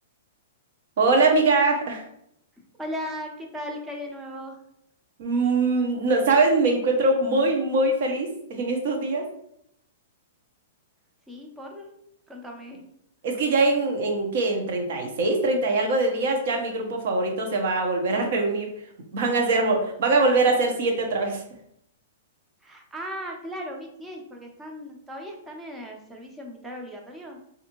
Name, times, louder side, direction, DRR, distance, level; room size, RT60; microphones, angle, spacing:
voice 1, 1.0-2.0 5.2-9.2 13.2-18.7 19.1-21.4, right 3 dB, 60° right, 3 dB, 0.8 m, -22 dB
voice 2, 2.8-4.6 11.3-11.9 12.3-12.8 22.6-27.4, equal, 10° right, 1 dB, 0.5 m, -37 dB
3.4 x 2.6 x 2.9 m, 0.74 s
hypercardioid pair, 155°, 0 cm